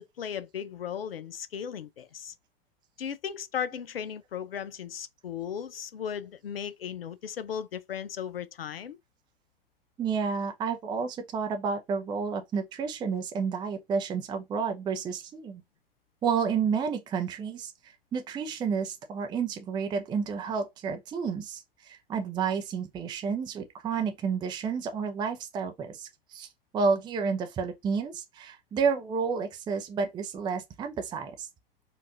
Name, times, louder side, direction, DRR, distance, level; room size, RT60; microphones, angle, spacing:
voice 1, 0.0-2.3 3.0-9.0, left 8 dB, 75° left, 0.4 m, -36 dB
voice 2, 10.0-15.6 16.2-31.5, right 5 dB, 15° right, 0.4 m, -30 dB
4.4 x 2.4 x 2.5 m
figure-of-eight pair, 85°, 29 cm